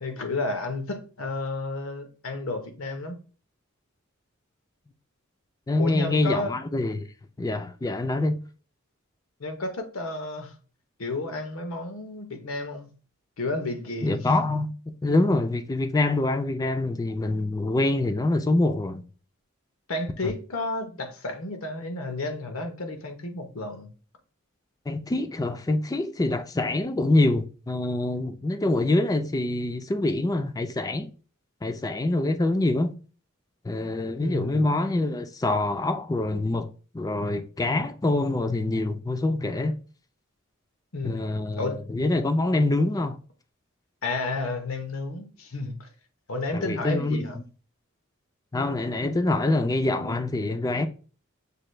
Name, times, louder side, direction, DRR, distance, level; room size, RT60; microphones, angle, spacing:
voice 1, 0.0-3.2 5.8-6.5 9.4-10.5 11.0-12.9 13.4-14.3 19.9-23.9 34.2-34.7 40.9-41.9 44.0-45.9 46.3-47.4, left 2 dB, 80° left, 0.9 m, -32 dB
voice 2, 5.7-7.1 7.4-8.4 14.0-14.7 15.0-19.0 20.2-20.3 24.9-31.1 31.6-32.9 33.6-36.7 36.9-39.8 41.0-43.2 46.5-47.4 48.5-50.9, left 2 dB, 15° left, 0.4 m, -25 dB
6.7 x 2.2 x 3.2 m
head